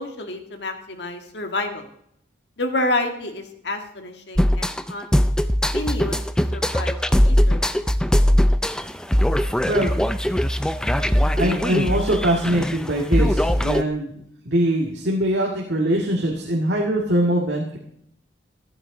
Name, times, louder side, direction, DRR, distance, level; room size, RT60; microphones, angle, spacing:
voice 1, 0.0-1.8 2.6-5.2 5.7-6.2 6.5-7.8, left 2 dB, 70° left, 5 dB, 1.7 m, -29 dB
sound 1, 4.4-13.8, equal, 5° left, 0.4 m, -20 dB
voice 2, 11.3-17.8, right 1 dB, 70° right, -1 dB, 1.9 m, -22 dB
14.5 x 12.0 x 3.9 m, 0.71 s
head